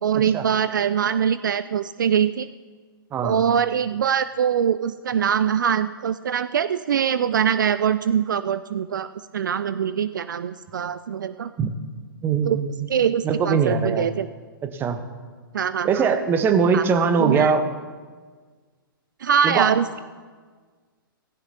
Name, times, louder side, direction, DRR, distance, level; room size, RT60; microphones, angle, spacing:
voice 1, 0.0-2.5 3.2-11.5 12.5-12.6 12.9-14.3 15.5-16.1 16.7-16.8 17.2-17.5 19.2-20.0, right 8 dB, 60° right, 13 dB, 0.4 m, -23 dB
voice 2, 3.1-3.4 11.6-11.7 12.2-12.9 13.2-14.1 14.6-15.0 15.8-17.7 19.4-19.7, right 6 dB, 20° right, 8 dB, 1.0 m, -21 dB
17.5 x 15.5 x 2.9 m, 1.5 s
figure-of-eight pair, 115°, 12 cm